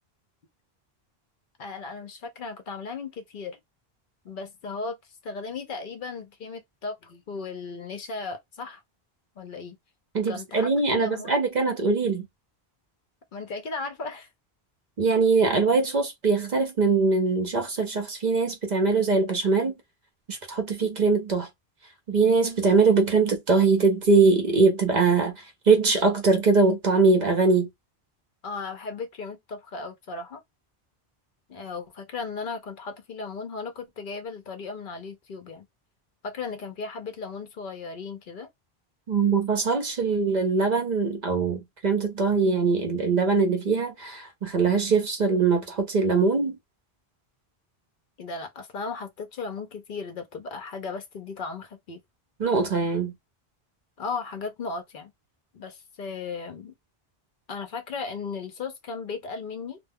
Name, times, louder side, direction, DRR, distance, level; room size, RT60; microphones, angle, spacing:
voice 1, 1.6-3.6 4.2-8.8 9.4-9.8 10.3-11.3 13.3-14.3 28.4-30.4 31.5-35.7 36.2-38.5 48.2-52.0 54.0-55.1 55.5-56.7 57.5-59.8, left 4 dB, 60° left, 0.7 m, -36 dB
voice 2, 10.1-12.3 15.0-19.7 20.3-21.5 22.1-27.7 39.1-46.6 52.4-53.1, right 4 dB, 50° right, 0.6 m, -22 dB
2.2 x 2.1 x 3.3 m
omnidirectional pair, 1.0 m